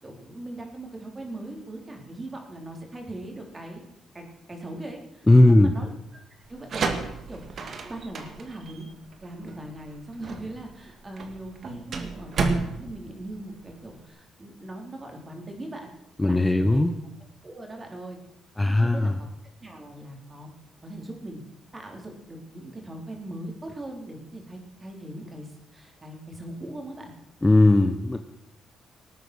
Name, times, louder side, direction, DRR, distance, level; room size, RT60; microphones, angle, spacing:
voice 1, 0.0-3.8 4.1-5.9 6.5-6.9 7.3-7.6 7.9-8.9 9.2-15.9 16.2-16.8 17.4-18.2 18.7-19.1 19.6-20.5 20.8-21.4 21.7-27.1, right 1 dB, 25° right, 2 dB, 4.1 m, -40 dB
voice 2, 5.3-5.7 16.2-16.9 18.6-19.2 27.4-28.2, left 2 dB, 15° left, 7 dB, 1.0 m, -18 dB
sound 1, 6.5-14.0, right 4 dB, 55° right, 2.2 m, -32 dB
19.0 x 9.1 x 6.4 m, 0.80 s
cardioid pair, 90°, 0 cm